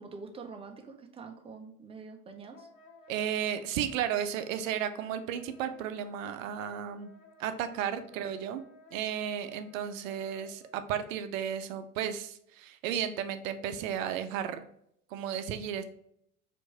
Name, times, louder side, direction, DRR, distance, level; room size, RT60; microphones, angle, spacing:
voice 1, 0.0-2.7, right 4 dB, 15° right, 4 dB, 0.6 m, -46 dB
Wind instrument woodwind instrument, 2.5-10.7, left 2 dB, 60° left, 1.0 m, -56 dB
voice 2, 3.1-7.1 7.4-8.6 8.9-14.7 15.1-15.8, right 9 dB, 60° right, 10 dB, 0.6 m, -34 dB
4.5 x 2.7 x 4.0 m, 0.72 s
figure-of-eight pair, 70°, 46 cm